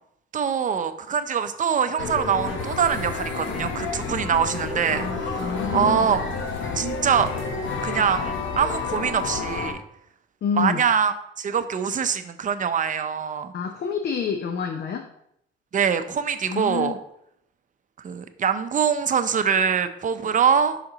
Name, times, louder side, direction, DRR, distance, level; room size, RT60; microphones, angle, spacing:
voice 1, 0.3-6.2 6.8-7.3 7.8-9.8 10.6-13.5 15.7-16.9 18.0-20.8, right 7 dB, 40° right, 10 dB, 0.6 m, -24 dB
sound 1, 2.0-9.7, left 4 dB, 75° left, 1.1 m, -30 dB
voice 2, 5.4-6.1 10.4-10.8 13.5-15.0 16.5-17.0, left 6 dB, 55° left, 5 dB, 0.6 m, -27 dB
5.8 x 4.3 x 3.8 m, 0.75 s
cardioid pair, 90°, 20 cm